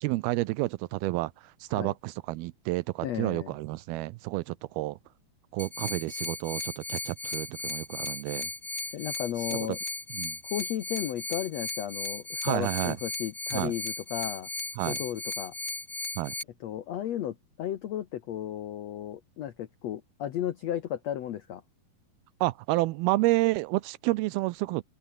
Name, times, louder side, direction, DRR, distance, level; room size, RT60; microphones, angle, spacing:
voice 1, 0.0-5.0 5.5-8.5 9.5-9.6 10.1-10.4 12.4-13.0 13.5-13.7 14.8-15.0 16.2-16.4 22.4-24.8, right 20 dB, 80° right, 2.4 m, -30 dB
voice 2, 3.0-3.5 8.9-9.8 10.5-14.5 14.8-15.5 16.6-21.6, left 11 dB, 80° left, 1.5 m, -34 dB
sound 1, 5.6-16.4, left 2 dB, 15° left, 3.5 m, -36 dB
open air
omnidirectional pair, 4.6 m